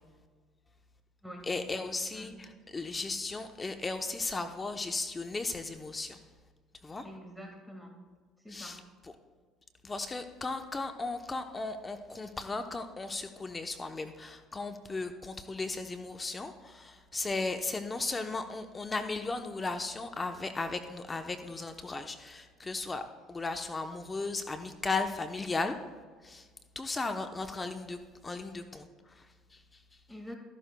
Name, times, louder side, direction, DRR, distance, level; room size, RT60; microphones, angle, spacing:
voice 1, 1.5-6.2 6.8-7.1 8.5-9.1 9.8-25.8 26.2-26.5 26.7-30.0, left 3 dB, 25° left, 7 dB, 0.8 m, -36 dB
voice 2, 7.0-8.0 8.4-8.8 30.1-30.4, equal, ahead, 1 dB, 1.9 m, -46 dB
13.5 x 11.5 x 2.3 m, 1.5 s
hypercardioid pair, 70°, 0 cm